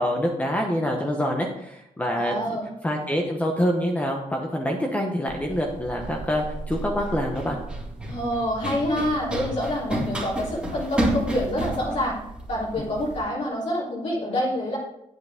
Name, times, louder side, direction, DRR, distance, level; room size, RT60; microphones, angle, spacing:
voice 1, 0.0-2.3 2.8-7.6, equal, 10° left, 1 dB, 1.1 m, -26 dB
voice 2, 2.1-2.6 8.1-12.2 12.5-14.8, left 1 dB, 60° left, -7 dB, 3.7 m, -27 dB
Run, 5.3-13.2, right 1 dB, 10° right, 2.3 m, -31 dB
9.0 x 8.1 x 3.6 m, 0.81 s
cardioid pair, 130°, 13 cm